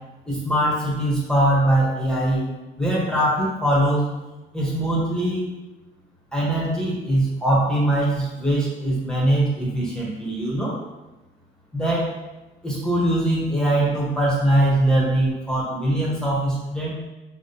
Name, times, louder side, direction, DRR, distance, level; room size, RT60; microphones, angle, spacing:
voice 1, 0.3-2.5 2.8-4.1 4.5-5.5 6.3-10.8 11.7-12.1 12.6-16.9, right 1 dB, 5° left, -6 dB, 1.2 m, -22 dB
4.5 x 3.5 x 2.8 m, 1.1 s
cardioid pair, 90°, 20 cm